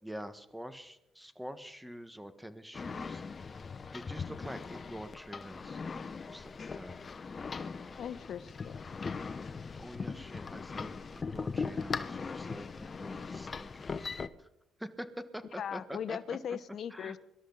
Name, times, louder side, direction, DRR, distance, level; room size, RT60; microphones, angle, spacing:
voice 1, 0.0-3.6 3.9-5.8 6.2-7.0 9.8-14.5 14.8-16.6 16.9-17.2, equal, 5° right, 10 dB, 1.5 m, -46 dB
sound 1, 2.7-14.3, left 5 dB, 35° left, 0.9 m, -40 dB
voice 2, 8.0-8.8 15.6-17.2, left 8 dB, 65° left, 15 dB, 0.9 m, -39 dB
24.0 x 12.5 x 4.0 m, 0.88 s
cardioid pair, 90°, 0 cm